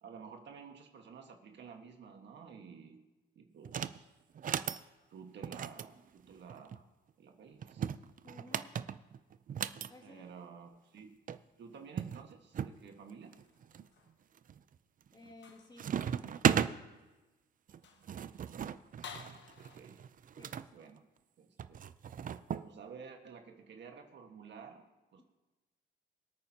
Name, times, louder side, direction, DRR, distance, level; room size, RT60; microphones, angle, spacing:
voice 1, 0.0-3.0 3.3-4.1 5.1-6.9 7.2-7.9 10.0-11.2 11.6-13.3 19.7-20.0 20.7-21.0 21.4-21.8 22.6-25.2, right 6 dB, 65° right, 4 dB, 1.6 m, -52 dB
sound 1, 3.6-4.0 4.3-4.8 5.4-6.8 7.6-9.9 11.0-11.1 11.3-11.4 12.0-12.8 13.3-13.8 14.4-14.8 15.1-15.5 15.8-16.7 17.7-20.7 21.6-22.7, right 8 dB, 45° right, 0.5 m, -36 dB
voice 2, 8.2-8.7 9.9-10.2 15.1-16.9 20.4-20.6, left 2 dB, 20° left, 2 dB, 2.0 m, -56 dB
sound 2, 13.3-14.2 15.4-15.9 16.3-16.5 17.1-17.2 17.7-18.2 19.0-19.8, left 7 dB, 65° left, 1.1 m, -52 dB
24.0 x 8.9 x 2.9 m, 1.1 s
cardioid pair, 90°, 20 cm